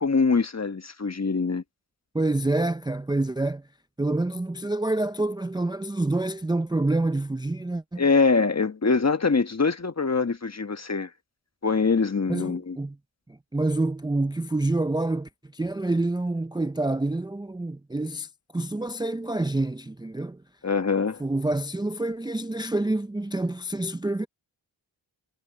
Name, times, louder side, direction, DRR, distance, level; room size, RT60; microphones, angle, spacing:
voice 1, 0.0-1.6 8.0-11.1 11.6-12.8 20.6-21.2, left 4 dB, 30° left, 1.3 m, -23 dB
voice 2, 2.1-3.6 4.0-8.0 12.3-13.0 13.3-20.4 21.2-24.3, right 2 dB, 10° right, 0.6 m, -27 dB
cardioid pair, 55°, 48 cm